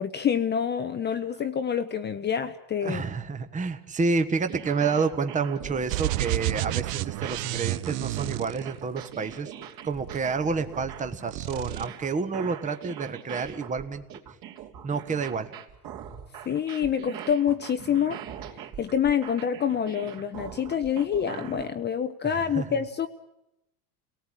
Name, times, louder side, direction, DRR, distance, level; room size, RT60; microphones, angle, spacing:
voice 1, 0.0-3.0 16.4-18.2 18.8-23.1, left 8 dB, 20° left, 8 dB, 0.9 m, -27 dB
voice 2, 2.8-9.5 9.8-14.0 14.8-15.5 22.2-22.8, right 4 dB, 15° right, 9 dB, 1.3 m, -29 dB
sound 1, 4.5-21.7, right 9 dB, 45° right, 3.4 m, -42 dB
sound 2, 5.9-9.2 9.9-11.0 11.3-11.9, right 16 dB, 75° right, 0.9 m, -31 dB
29.5 x 18.5 x 9.0 m, 0.90 s
supercardioid pair, 135°, 48 cm